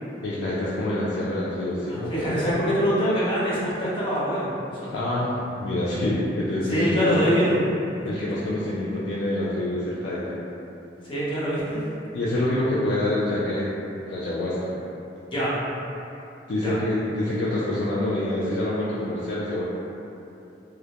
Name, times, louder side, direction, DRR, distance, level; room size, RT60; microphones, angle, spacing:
voice 1, 0.2-2.3 4.9-7.4 8.1-10.4 12.1-13.7 14.1-14.7 16.5-19.6, left 1 dB, 70° left, -8 dB, 0.3 m, -26 dB
voice 2, 1.9-4.9 6.7-7.5 11.0-11.8 15.3-15.5 16.6-16.8, equal, 30° left, -9 dB, 0.6 m, -24 dB
2.1 x 2.0 x 2.8 m, 2.8 s
head